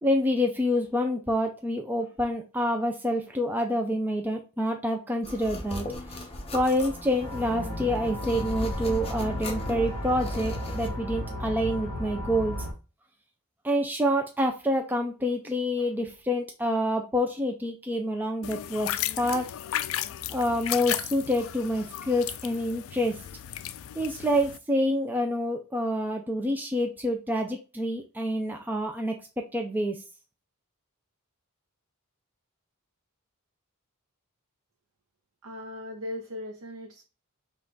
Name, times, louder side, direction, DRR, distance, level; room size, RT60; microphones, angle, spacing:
voice 1, 0.0-5.9 6.5-12.6 13.6-19.5 20.3-23.2 24.0-29.2 29.5-30.0, equal, 10° right, 2 dB, 0.4 m, -27 dB
sound 1, 5.2-10.9, left 1 dB, 25° left, 0.9 m, -37 dB
sound 2, 7.2-12.7, left 1 dB, 40° right, 1.4 m, -34 dB
sound 3, 18.4-24.6, left 12 dB, 65° left, 0.3 m, -35 dB
voice 2, 35.4-37.0, left 1 dB, 80° right, 3 dB, 0.8 m, -38 dB
5.6 x 2.5 x 3.8 m, 0.32 s
head